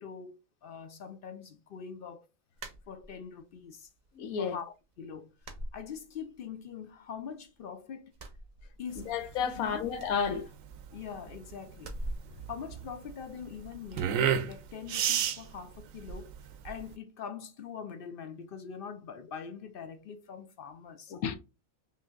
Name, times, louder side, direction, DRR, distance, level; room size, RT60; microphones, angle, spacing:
voice 1, 0.0-2.3 2.9-3.9 4.4-8.1 8.8-9.2 9.4-9.9 10.9-12.0 12.5-16.3 16.6-21.2, left 7 dB, 65° left, 0.5 m, -43 dB
sound 1, 2.6-3.5 3.8-4.5 4.8-5.0 5.4-6.5 6.8-7.6 8.1-9.2 9.5-9.6 9.9-11.1 11.7-13.4 13.9-14.2, right 1 dB, 40° right, 0.7 m, -44 dB
voice 2, 4.2-4.6 9.1-10.5 21.1-21.4, left 7 dB, 90° left, 1.2 m, -31 dB
sound 2, 8.9-16.9, right 9 dB, 75° right, 1.0 m, -33 dB
5.5 x 2.7 x 2.4 m
omnidirectional pair, 1.5 m